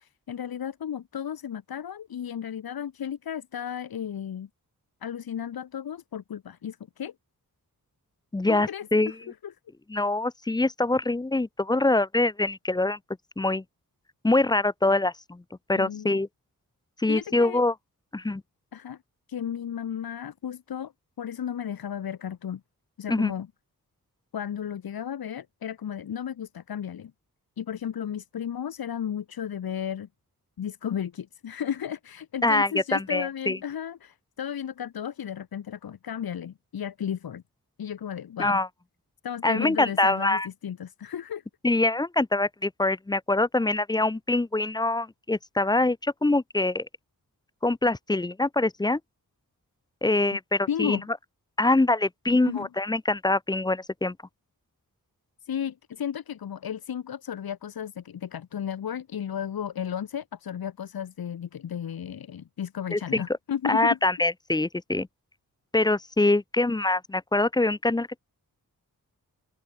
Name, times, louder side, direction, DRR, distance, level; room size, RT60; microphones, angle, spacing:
voice 1, 0.0-4.5 5.0-7.1 8.5-9.5 15.8-16.2 17.1-17.6 18.7-19.0 19.3-20.9 21.2-22.6 23.0-23.5 24.3-27.1 27.6-30.1 30.6-37.4 37.8-38.6 39.2-41.4 50.7-51.1 52.4-52.7 55.4-64.0, left 9 dB, 85° left, 1.2 m, -34 dB
voice 2, 8.3-9.1 9.9-13.0 13.4-13.6 14.2-15.4 15.7-16.3 17.0-17.7 18.1-18.4 23.1-23.3 32.4-33.6 38.4-38.7 39.4-40.5 41.6-46.9 47.6-49.0 50.0-51.0 51.6-54.2 62.9-63.2 63.6-65.1 65.7-68.2, left 2 dB, 10° left, 0.4 m, -24 dB
open air
wide cardioid pair, 160°, 36 cm